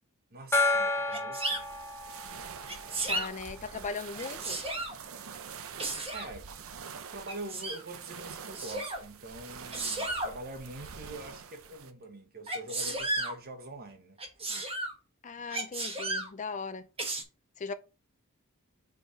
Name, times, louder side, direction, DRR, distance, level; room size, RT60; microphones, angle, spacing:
voice 1, 0.3-1.7 2.8-3.3 6.1-6.7 7.1-14.2, right 1 dB, 45° right, 1.3 m, -44 dB
Gong, 0.5-3.8, left 2 dB, 10° left, 1.0 m, -31 dB
Sneeze, 1.1-1.6 2.7-3.3 4.1-5.0 5.8-6.3 7.3-7.8 8.5-9.0 9.7-10.3 12.5-13.3 14.2-14.9 15.5-16.3 17.0-17.2, right 2 dB, 25° right, 1.4 m, -33 dB
sound 1, 1.5-11.9, right 6 dB, 70° right, 0.7 m, -46 dB
voice 2, 3.1-4.6 15.2-16.9 17.6-17.7, left 4 dB, 35° left, 0.5 m, -38 dB
4.8 x 4.4 x 5.0 m
head